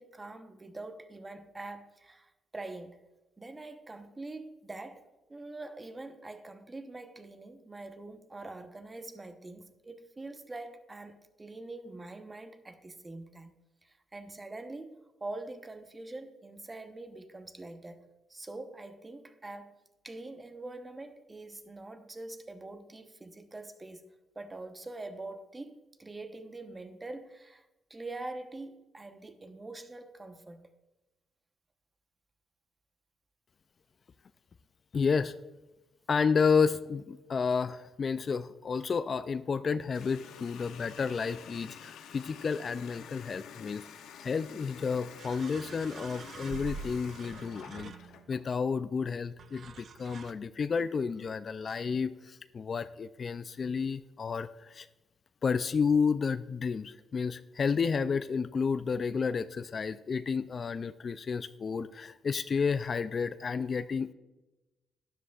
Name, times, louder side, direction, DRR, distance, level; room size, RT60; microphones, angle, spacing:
voice 1, 0.0-3.0 3.4-5.0 5.3-13.5 13.8-18.0 18.3-19.8 20.0-24.0 24.3-30.7, right 2 dB, 20° right, 0.9 m, -44 dB
voice 2, 34.9-35.3 36.1-43.8 44.2-47.9 48.3-54.9 55.4-64.1, left 5 dB, 45° left, 0.3 m, -31 dB
Water tap faucet, 39.9-48.5, left 8 dB, 80° left, 0.7 m, -49 dB
sound 1, 45.2-48.4 49.4-50.3, right 5 dB, 55° right, 0.4 m, -45 dB
12.5 x 10.0 x 2.4 m
cardioid pair, 90°, 0 cm